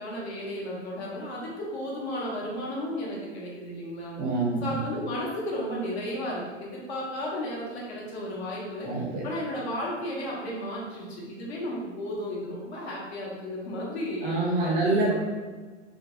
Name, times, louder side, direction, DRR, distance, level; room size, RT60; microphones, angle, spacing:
voice 1, 0.0-4.2 4.6-8.9 9.2-14.8, left 1 dB, 60° left, -4 dB, 0.9 m, -34 dB
voice 2, 4.2-4.7 8.8-9.2 14.2-15.1, right 2 dB, 25° right, -4 dB, 0.5 m, -26 dB
2.5 x 2.1 x 2.3 m, 1.4 s
figure-of-eight pair, 100°, 36 cm